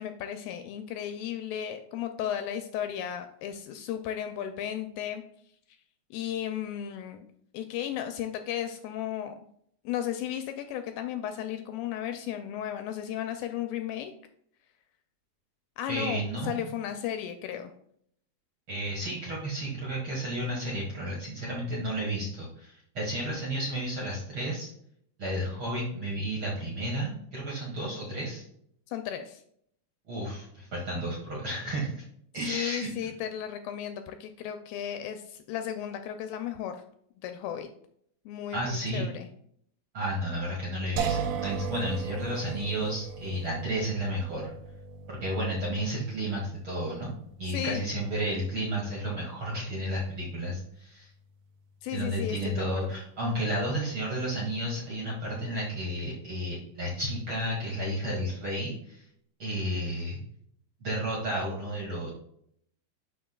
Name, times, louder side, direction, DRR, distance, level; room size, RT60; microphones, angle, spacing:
voice 1, 0.0-5.2 6.1-7.2 7.5-9.4 9.9-14.1 15.8-17.7 28.9-29.4 32.5-36.8 37.2-37.7 38.3-39.3 47.5-47.8 51.8-52.7, left 10 dB, 80° left, 7 dB, 2.2 m, -34 dB
voice 2, 15.9-16.7 18.7-24.7 25.2-28.4 30.1-32.0 32.3-32.9 38.5-39.0 39.9-44.5 45.1-47.1 47.4-51.1 51.9-59.0 59.4-60.2 60.8-62.1, right 1 dB, 50° right, -5 dB, 1.6 m, -32 dB
sound 1, 41.0-54.0, right 6 dB, 90° right, 1.8 m, -40 dB
11.0 x 4.6 x 2.3 m, 0.68 s
omnidirectional pair, 4.4 m